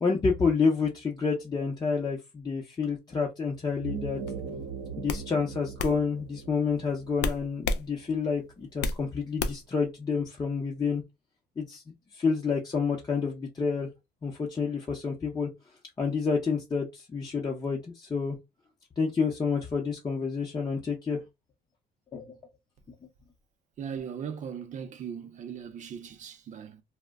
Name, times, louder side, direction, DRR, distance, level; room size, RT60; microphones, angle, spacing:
voice 1, 0.0-4.2 5.0-11.0 11.6-11.8 12.1-13.9 14.2-15.5 16.0-18.3 19.0-21.2 22.1-22.2, left 5 dB, 25° left, 0.6 m, -29 dB
sound 1, 3.7-8.5, right 5 dB, 80° right, 0.8 m, -40 dB
sound 2, 4.3-4.5 5.1-5.3 5.8-6.0 7.2-7.8 8.2-9.0 9.4-9.7, left 3 dB, 80° left, 0.4 m, -30 dB
voice 2, 23.8-26.8, right 7 dB, 45° right, 0.5 m, -38 dB
2.1 x 2.1 x 3.4 m
cardioid pair, 110°, 17 cm